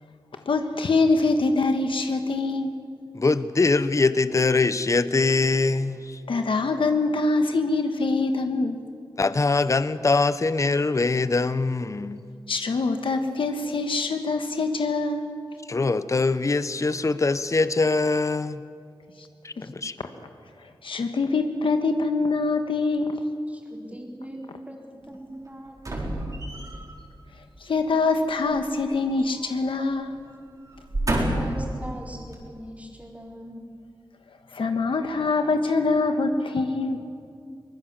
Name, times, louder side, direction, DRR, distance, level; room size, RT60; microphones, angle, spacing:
voice 1, 0.4-2.7 6.3-8.8 12.5-15.3 19.2-19.3 20.8-23.2 27.6-30.2 34.5-37.0, left 3 dB, 80° left, 6 dB, 1.3 m, -24 dB
voice 2, 3.1-6.2 9.2-12.2 15.7-18.6 19.4-20.0, left 3 dB, 35° left, 13 dB, 0.8 m, -23 dB
voice 3, 23.5-24.4 24.7-26.3 31.1-33.6, right 1 dB, 15° right, -1 dB, 4.3 m, -40 dB
sound 1, 25.8-26.9 28.5-29.6 29.9-30.1 30.7-31.7 32.3-32.4, right 1 dB, 40° right, 4.3 m, -29 dB
23.5 x 20.0 x 7.3 m, 2.3 s
wide cardioid pair, 95°, 9 cm